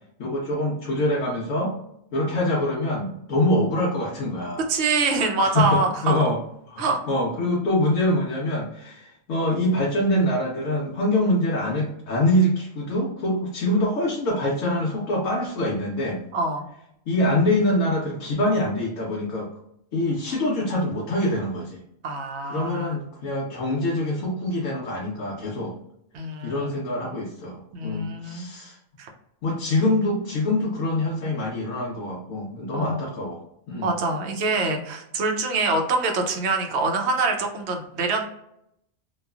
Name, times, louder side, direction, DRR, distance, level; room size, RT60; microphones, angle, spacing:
voice 1, 0.2-1.7 2.1-4.6 5.4-6.4 6.7-16.2 17.1-19.5 19.9-21.8 22.4-25.7 26.4-28.8 29.4-33.9, left 1 dB, 70° left, -3 dB, 1.0 m, -25 dB
voice 2, 4.7-6.2 6.8-7.0 16.3-16.7 22.0-23.0 26.1-26.7 27.7-28.5 29.0-29.1 32.7-33.0 33.8-38.2, right 3 dB, 65° right, 3 dB, 0.8 m, -25 dB
2.9 x 2.3 x 2.3 m, 0.77 s
omnidirectional pair, 1.4 m